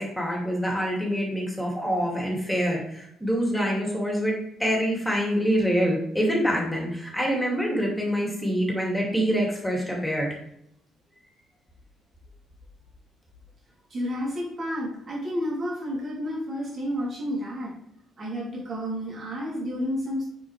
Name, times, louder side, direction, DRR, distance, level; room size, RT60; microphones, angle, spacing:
voice 1, 0.0-10.4, equal, 5° left, -1 dB, 2.4 m, -26 dB
voice 2, 13.9-17.7 18.2-20.2, equal, 40° right, -4 dB, 3.0 m, -30 dB
7.1 x 6.0 x 3.3 m, 0.76 s
figure-of-eight pair, 45°, 0 cm